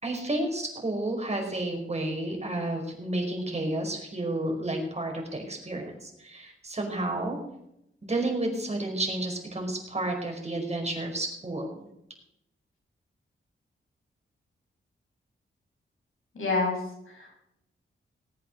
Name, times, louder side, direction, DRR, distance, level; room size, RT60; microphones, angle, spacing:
voice 1, 0.0-7.4 8.0-11.8, right 1 dB, 30° right, 2 dB, 5.1 m, -31 dB
voice 2, 16.3-17.3, left 3 dB, 80° left, -1 dB, 6.9 m, -29 dB
19.0 x 8.5 x 6.6 m, 0.81 s
cardioid pair, 70°, 21 cm